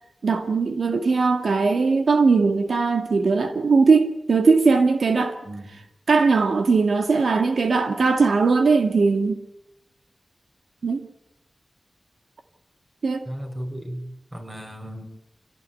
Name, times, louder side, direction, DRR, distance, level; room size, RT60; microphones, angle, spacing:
voice 1, 0.2-5.4 6.1-9.4 10.8-11.0 13.0-13.3, right 4 dB, 80° right, 1.9 m, -19 dB
voice 2, 5.4-5.8 13.3-15.0, equal, 20° right, 5.7 m, -35 dB
27.5 x 17.5 x 9.6 m
wide cardioid pair, 100°, 0 cm